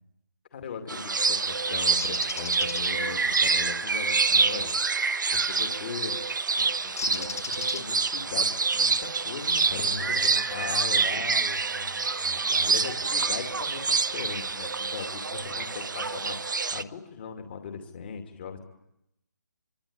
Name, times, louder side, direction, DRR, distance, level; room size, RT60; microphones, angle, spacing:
voice 1, 0.5-4.8 5.3-6.2 6.6-10.1 10.5-11.3 12.6-16.4 16.7-18.6, left 6 dB, 35° left, 5 dB, 2.6 m, -39 dB
sound 1, 0.9-16.8, right 4 dB, 75° right, 1.1 m, -27 dB
Bird, 2.0-2.8 5.4-5.7 7.0-8.2, left 5 dB, 50° left, 1.1 m, -36 dB
voice 2, 9.8-10.6 11.0-13.0 13.4-13.6 15.3-15.7, left 3 dB, 80° left, 2 dB, 4.5 m, -41 dB
25.5 x 25.5 x 8.7 m, 0.84 s
hypercardioid pair, 170°, 10 cm